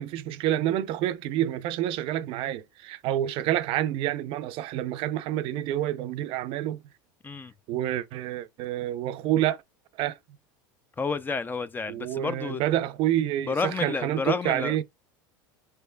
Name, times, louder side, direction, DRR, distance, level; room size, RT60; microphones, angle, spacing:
voice 1, 0.0-6.8 7.7-9.6 10.0-10.2 11.9-14.8, right 12 dB, 55° right, 0.5 m, -28 dB
voice 2, 11.0-12.6 13.5-14.8, left 4 dB, 20° left, 0.4 m, -30 dB
5.4 x 3.3 x 2.2 m
supercardioid pair, 105°, 11 cm